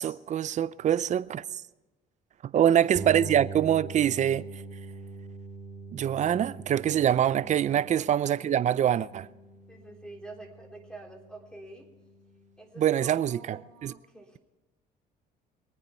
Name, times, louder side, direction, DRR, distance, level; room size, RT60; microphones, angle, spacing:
voice 1, 0.0-1.4 2.4-4.5 5.9-9.3 12.8-13.9, right 10 dB, 45° right, 0.5 m, -25 dB
voice 2, 2.6-3.4 8.0-8.1 9.7-11.9 12.6-14.4, right 2 dB, 5° left, 3.5 m, -47 dB
sound 1, 2.9-12.7, right 4 dB, 25° right, 2.2 m, -43 dB
24.0 x 9.4 x 4.4 m
cardioid pair, 110°, 17 cm